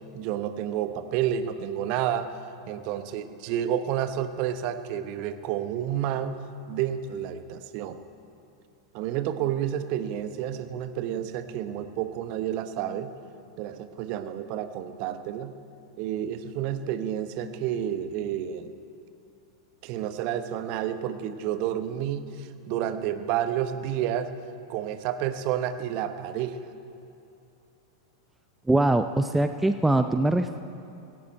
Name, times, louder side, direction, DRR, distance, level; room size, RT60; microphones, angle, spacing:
voice 1, 0.1-2.3 2.7-6.4 6.7-8.0 8.9-13.1 13.6-15.5 16.0-18.7 19.8-24.3 24.7-26.6, right 10 dB, 45° right, 11 dB, 1.0 m, -30 dB
voice 2, 28.7-30.6, right 2 dB, 5° right, 9 dB, 0.5 m, -22 dB
17.5 x 16.5 x 4.5 m, 2.8 s
figure-of-eight pair, 95°, 2 cm